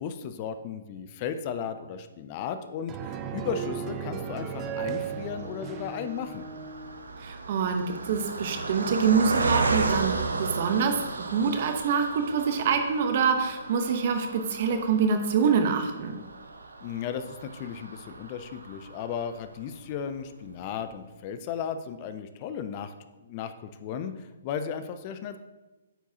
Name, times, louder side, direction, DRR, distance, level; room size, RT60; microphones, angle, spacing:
voice 1, 0.0-6.5 16.8-22.9 23.2-25.4, left 7 dB, 35° left, 10 dB, 0.4 m, -35 dB
sound 1, 2.9-7.0, right 7 dB, 25° right, 0.4 m, -36 dB
Car passing by, 4.1-19.6 20.1-20.2 20.5-20.6, right 3 dB, 80° right, 0.7 m, -34 dB
voice 2, 7.2-11.0 11.3-16.2, right 6 dB, 50° right, 6 dB, 0.9 m, -25 dB
8.9 x 4.6 x 2.8 m, 1.2 s
hypercardioid pair, 135°, 0 cm